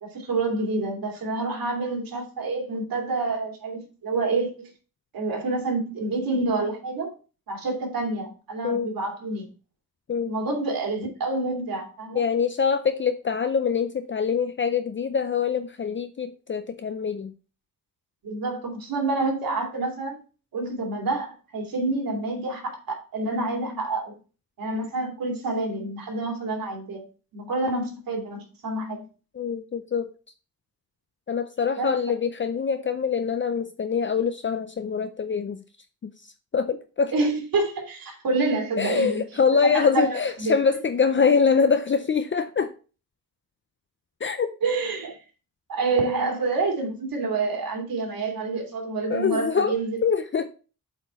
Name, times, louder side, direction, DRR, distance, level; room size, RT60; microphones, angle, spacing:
voice 1, 0.0-4.7 5.1-7.1 7.5-9.5 10.2-12.2 18.2-20.2 20.5-24.2 24.6-27.0 27.3-29.1 31.8-31.9 37.1-39.2 39.6-40.6 44.6-45.2 45.7-50.0, right 3 dB, 80° right, 2.6 m, -28 dB
voice 2, 12.1-17.3 29.3-30.1 31.3-35.6 36.0-36.1 36.5-37.1 38.8-42.7 44.2-44.5 49.1-49.8 50.0-50.5, left 6 dB, 35° left, 0.5 m, -24 dB
8.0 x 4.3 x 4.3 m
wide cardioid pair, 110°, 34 cm